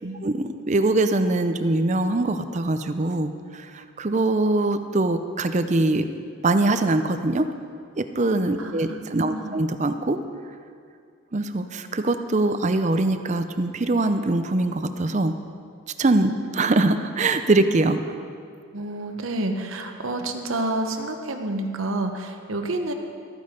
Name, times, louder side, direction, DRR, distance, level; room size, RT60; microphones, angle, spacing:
voice 1, 0.2-6.0 6.4-7.5 8.0-10.2 11.3-15.3 16.0-18.0, right 2 dB, 35° right, 9 dB, 0.5 m, -23 dB
voice 2, 8.6-9.6 18.7-22.9, right 2 dB, 75° right, 5 dB, 1.0 m, -29 dB
13.5 x 9.4 x 5.2 m, 2.3 s
head